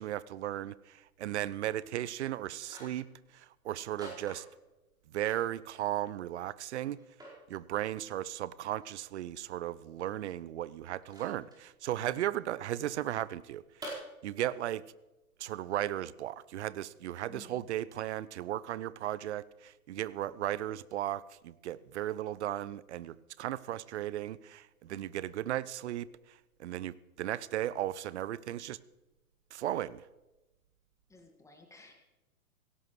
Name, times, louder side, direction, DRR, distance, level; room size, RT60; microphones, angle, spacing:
voice 1, 0.0-3.1 3.3-4.4 5.1-7.0 7.5-13.6 14.2-14.8 15.4-28.8 29.5-30.0, right 12 dB, 50° right, 19 dB, 0.6 m, -36 dB
sound 1, 2.6-3.1 4.0-4.7 5.2-5.9 6.2-6.4 6.9-7.4 8.8-8.9 11.0-11.6 13.8-13.9, right 1 dB, 10° right, 4.7 m, -47 dB
voice 2, 17.3-17.6 24.9-25.2 31.1-31.9, left 3 dB, 5° left, 3 dB, 1.8 m, -56 dB
17.0 x 17.0 x 3.2 m, 1.0 s
figure-of-eight pair, 115°, 44 cm